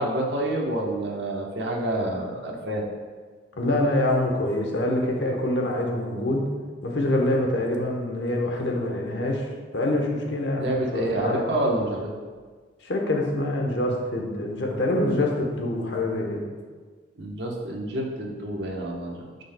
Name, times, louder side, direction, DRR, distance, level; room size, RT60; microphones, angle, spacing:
voice 1, 0.0-2.8 10.6-12.1 17.2-19.4, right 1 dB, 70° right, -1 dB, 1.1 m, -28 dB
voice 2, 3.6-6.4 6.8-9.5 9.7-10.7 10.9-11.5 12.8-16.4, left 1 dB, 70° left, 1 dB, 1.0 m, -25 dB
9.1 x 5.4 x 2.2 m, 1.5 s
head